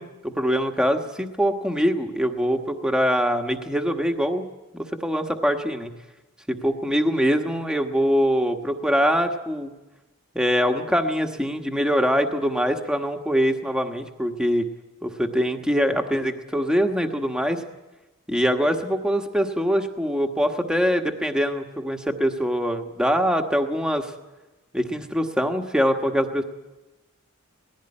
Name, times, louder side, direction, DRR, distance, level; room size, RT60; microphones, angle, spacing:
voice 1, 0.0-4.5 4.7-5.9 6.5-9.7 10.3-14.6 15.0-17.6 18.3-24.1 24.7-26.4, equal, 5° right, 4 dB, 1.3 m, -23 dB
19.0 x 15.5 x 9.8 m, 1.1 s
head